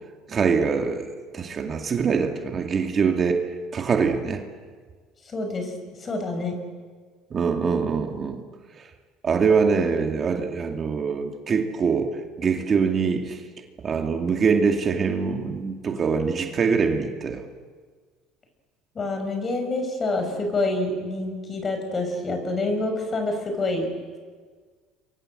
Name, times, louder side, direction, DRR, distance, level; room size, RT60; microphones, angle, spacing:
voice 1, 0.3-1.1 1.3-4.4 7.3-8.4 8.8-8.9 9.2-13.4 13.8-17.4, right 5 dB, 35° right, 4 dB, 2.3 m, -24 dB
voice 2, 5.2-5.7 6.0-6.6 18.9-23.9, left 2 dB, 30° left, 6 dB, 6.4 m, -27 dB
28.0 x 23.5 x 7.9 m, 1.5 s
supercardioid pair, 110°, 0 cm